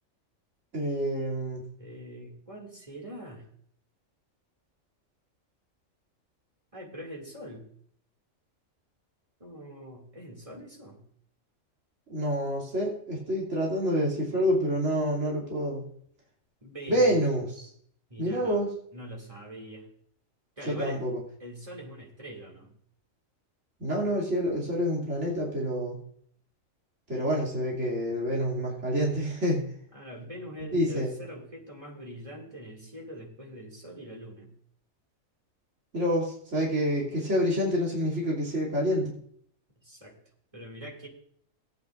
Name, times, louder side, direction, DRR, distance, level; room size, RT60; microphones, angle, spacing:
voice 1, 0.7-1.6 12.1-15.8 16.9-17.7 18.2-18.7 20.7-21.2 23.8-26.0 27.1-29.6 30.7-31.1 35.9-39.1, equal, 55° right, -5 dB, 3.3 m, -27 dB
voice 2, 1.8-3.4 6.7-7.6 9.4-11.0 16.6-17.1 18.1-18.6 18.9-19.9 20.6-21.0 21.4-22.7 29.9-34.5 39.8-40.2 40.5-41.1, equal, 25° right, -1 dB, 2.7 m, -43 dB
18.0 x 9.6 x 2.6 m, 0.63 s
omnidirectional pair, 1.4 m